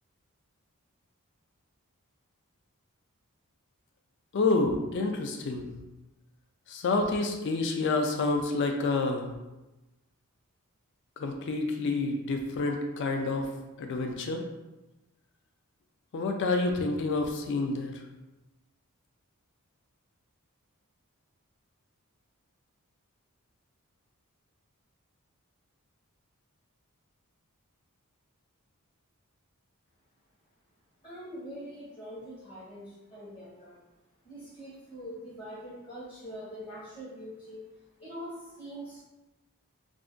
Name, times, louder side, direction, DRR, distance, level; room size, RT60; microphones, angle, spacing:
voice 1, 4.3-5.7 6.7-9.3 11.2-13.5 13.8-14.4 16.1-18.0, left 3 dB, 55° left, 3 dB, 0.4 m, -28 dB
voice 2, 31.0-33.8 34.2-37.6 38.0-39.0, equal, 25° left, -9 dB, 0.8 m, -43 dB
2.4 x 2.4 x 3.6 m, 1.0 s
head